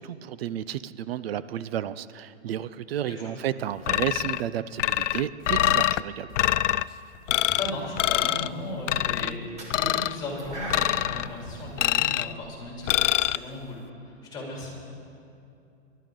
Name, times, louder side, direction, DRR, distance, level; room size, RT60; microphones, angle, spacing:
voice 1, 0.0-6.4, right 11 dB, 55° right, 16 dB, 0.5 m, -32 dB
voice 2, 3.1-3.4 7.5-12.9 13.2-13.8 14.0-14.8, left 1 dB, 10° left, -3 dB, 4.0 m, -36 dB
sound 1, 3.9-4.4 4.8-6.0 6.4-6.8 7.3-7.7 8.0-8.5 8.9-9.3 9.7-10.2 10.7-11.3 11.8-12.3 12.9-13.4, left 13 dB, 85° left, 0.5 m, -24 dB
sound 2, 7.6-7.9 8.2-13.2, right 1 dB, 20° right, 2.2 m, -41 dB
26.0 x 12.0 x 3.8 m, 2.7 s
hypercardioid pair, 160°, 36 cm